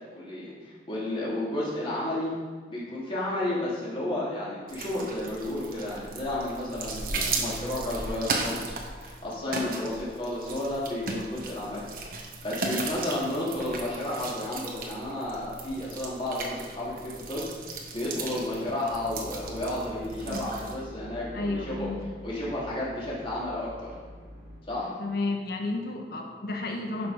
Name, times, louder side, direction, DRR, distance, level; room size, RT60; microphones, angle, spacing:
voice 1, 0.1-2.3 2.7-11.8 12.4-17.5 17.9-21.9 22.2-23.9 24.7-24.9, left 1 dB, 30° left, -7 dB, 3.1 m, -32 dB
sound 1, 4.7-20.7, right 3 dB, 50° right, 1.4 m, -36 dB
sound 2, 18.9-24.6, equal, 15° right, 2.2 m, -44 dB
voice 2, 21.3-22.0 25.0-27.1, left 2 dB, 60° left, 2 dB, 1.3 m, -31 dB
11.0 x 6.4 x 5.1 m, 1.5 s
head